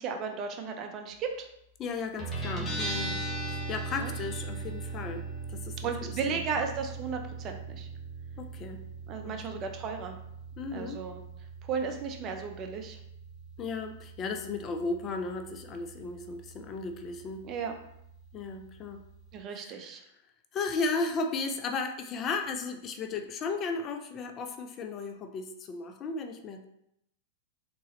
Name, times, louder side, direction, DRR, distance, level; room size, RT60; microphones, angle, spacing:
voice 1, 0.0-1.5 4.0-4.1 5.8-7.9 9.1-10.2 10.7-11.2 11.6-13.0 17.4-17.7 19.3-20.0, right 5 dB, 35° right, 4 dB, 0.6 m, -35 dB
voice 2, 1.8-6.4 8.4-8.8 9.2-9.6 10.6-11.0 13.6-17.5 18.3-19.0 19.5-19.9 20.5-26.6, left 4 dB, 35° left, 6 dB, 0.4 m, -35 dB
Guitar, 2.2-19.4, right 3 dB, 15° left, 1.1 m, -40 dB
3.7 x 3.0 x 2.9 m, 0.77 s
hypercardioid pair, 115°, 0 cm